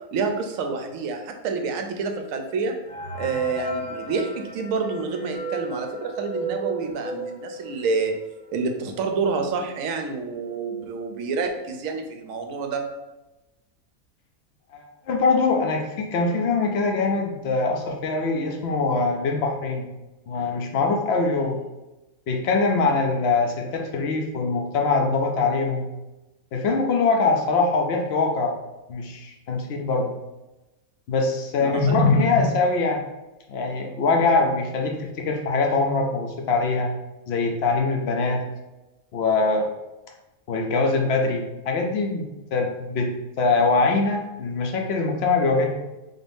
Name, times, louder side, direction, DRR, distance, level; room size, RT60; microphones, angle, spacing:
voice 1, 0.1-2.8 3.1-8.2 8.5-12.9 31.6-32.0, right 4 dB, 70° right, 5 dB, 0.9 m, -28 dB
sound 1, 2.9-8.3 8.7-8.8 9.0-9.2 9.9-10.0 10.4-10.7, right 2 dB, 30° left, 0.8 m, -34 dB
voice 2, 14.7-19.9 20.3-21.6 22.3-25.9 26.5-28.6 28.9-30.2 31.1-33.0 33.5-36.9 37.3-38.4 39.1-39.7 40.5-42.2 42.5-45.8, left 3 dB, 60° left, 3 dB, 0.7 m, -23 dB
3.9 x 2.6 x 3.4 m, 1.0 s
omnidirectional pair, 1.6 m